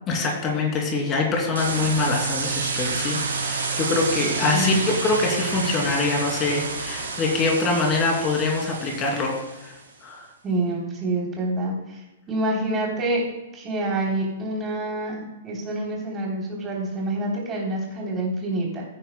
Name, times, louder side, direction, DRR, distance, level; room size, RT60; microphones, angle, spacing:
voice 1, 0.1-9.3 9.6-9.7 10.0-10.2, left 3 dB, 25° left, 0 dB, 2.6 m, -24 dB
sound 1, 1.6-9.8, right 4 dB, 65° right, 4.0 m, -29 dB
voice 2, 10.4-12.0 12.3-13.2 13.5-18.8, right 1 dB, 20° right, -2 dB, 3.2 m, -27 dB
16.5 x 9.5 x 2.2 m, 1.0 s
figure-of-eight pair, 110°, 0 cm